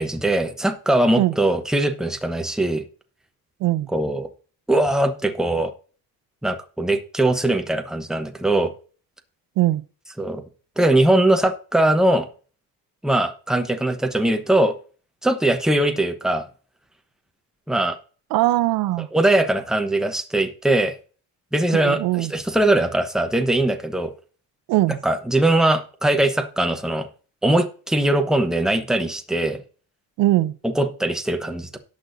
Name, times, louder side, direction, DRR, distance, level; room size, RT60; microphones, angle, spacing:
voice 1, 0.0-2.8 3.9-4.3 4.7-5.7 6.4-8.7 10.2-10.4 10.8-12.3 13.0-14.7 15.2-16.5 17.7-18.0 19.1-20.9 21.5-24.1 25.0-27.1 27.4-29.6 30.6-31.8, right 1 dB, ahead, 0.9 m, -21 dB
voice 2, 18.3-19.1 21.7-22.3 24.7-25.0 30.2-30.5, right 16 dB, 85° right, 0.6 m, -20 dB
18.0 x 6.2 x 2.6 m
cardioid pair, 155°, 34 cm